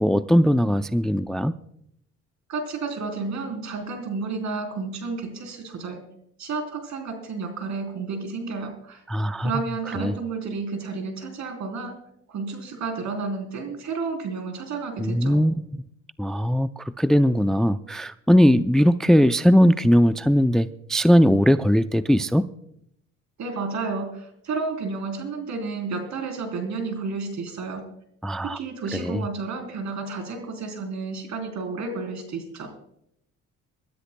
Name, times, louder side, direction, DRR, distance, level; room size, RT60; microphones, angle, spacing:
voice 1, 0.0-1.5 9.1-9.5 10.0-10.1 15.0-15.8 16.2-22.5 28.2-28.6 28.9-29.2, equal, ahead, 11 dB, 0.4 m, -19 dB
voice 2, 2.5-6.0 6.4-9.0 9.4-11.9 12.3-15.4 23.4-27.8 28.4-32.7, right 4 dB, 65° right, 4 dB, 3.7 m, -31 dB
26.0 x 13.0 x 2.2 m, 0.75 s
cardioid pair, 90°, 30 cm